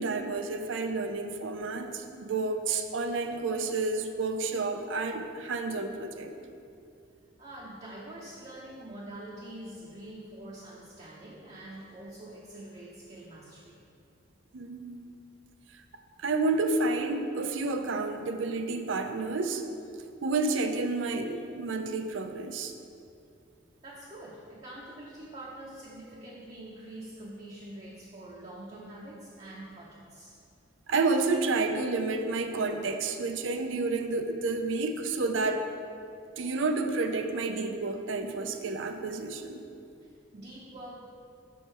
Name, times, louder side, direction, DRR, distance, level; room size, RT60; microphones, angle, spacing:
voice 1, 0.0-6.3 14.5-15.2 16.2-19.6 20.2-22.7 30.9-35.7 36.4-39.6, right 3 dB, 75° right, 7 dB, 0.5 m, -30 dB
voice 2, 7.4-13.8 23.8-30.4 40.0-41.0, right 1 dB, 35° right, -5 dB, 0.7 m, -45 dB
6.3 x 5.4 x 4.3 m, 2.5 s
head